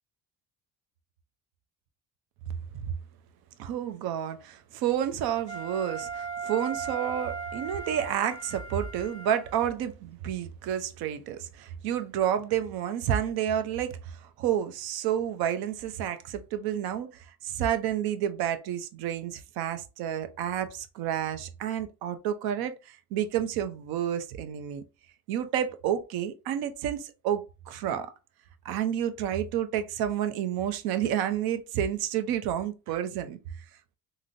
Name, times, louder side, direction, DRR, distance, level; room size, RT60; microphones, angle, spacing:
voice 1, 3.6-24.8 25.3-28.1 28.6-33.4, right 10 dB, 85° right, 0.6 m, -30 dB
Wind instrument woodwind instrument, 5.5-9.8, right 5 dB, 15° right, 1.1 m, -37 dB
3.7 x 2.0 x 2.5 m
cardioid pair, 95°, 36 cm